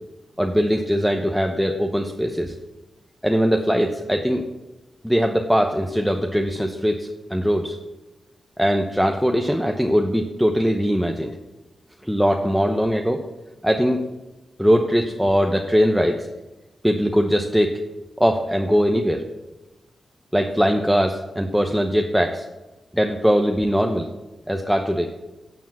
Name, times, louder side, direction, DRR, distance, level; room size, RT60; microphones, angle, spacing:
voice 1, 0.4-2.5 3.2-4.4 5.0-7.8 8.6-11.3 12.0-13.2 13.6-14.0 14.6-16.3 16.8-17.8 18.2-19.2 20.3-22.5 22.9-24.1 24.5-25.1, equal, ahead, 2 dB, 0.9 m, -21 dB
12.0 x 7.2 x 7.4 m, 1.1 s
wide cardioid pair, 105°, 0 cm